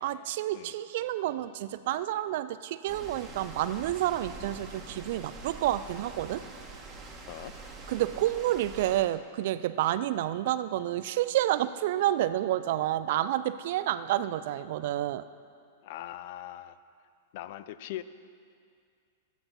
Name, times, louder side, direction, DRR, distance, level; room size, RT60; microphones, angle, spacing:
voice 1, 0.0-6.4 7.9-15.2, right 13 dB, 55° right, 15 dB, 0.4 m, -29 dB
sound 1, 2.9-9.0, right 3 dB, 25° right, 2.0 m, -45 dB
voice 2, 15.8-16.8 17.3-18.0, left 13 dB, 50° left, 14 dB, 0.5 m, -40 dB
16.5 x 12.0 x 4.3 m, 2.3 s
figure-of-eight pair, 100°, 0 cm